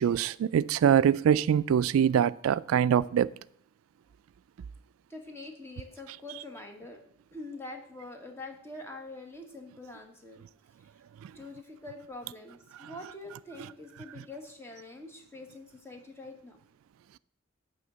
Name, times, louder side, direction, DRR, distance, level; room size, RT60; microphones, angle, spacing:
voice 1, 0.0-3.3 11.2-11.3, right 8 dB, 90° right, 0.3 m, -24 dB
voice 2, 5.1-7.0 7.3-10.4 11.3-16.6, left 2 dB, 10° left, 1.4 m, -45 dB
10.5 x 3.6 x 7.4 m
head